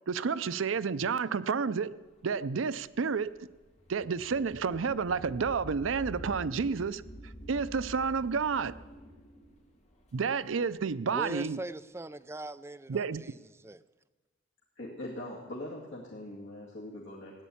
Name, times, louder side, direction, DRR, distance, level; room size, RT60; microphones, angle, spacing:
voice 1, 0.1-2.0 2.2-3.4 3.9-8.7 10.1-11.6 12.9-13.2, right 5 dB, 85° right, 0.5 m, -30 dB
sound 1, 2.1-11.1, right 1 dB, 35° left, 1.9 m, -48 dB
voice 2, 11.1-13.8, right 2 dB, 15° right, 0.4 m, -41 dB
voice 3, 14.8-17.3, left 1 dB, 70° left, 2.3 m, -41 dB
15.5 x 10.0 x 8.5 m
head